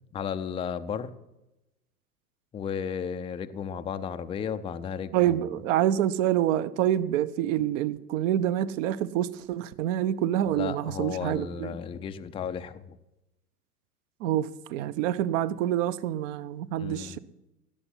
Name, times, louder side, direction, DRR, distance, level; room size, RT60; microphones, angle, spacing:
voice 1, 0.1-1.1 2.5-5.6 10.5-13.0 16.8-17.2, left 7 dB, 10° left, 0.5 m, -34 dB
voice 2, 5.1-11.8 14.2-17.2, right 11 dB, 55° right, 1.0 m, -27 dB
16.5 x 7.1 x 10.0 m
hypercardioid pair, 115°, 46 cm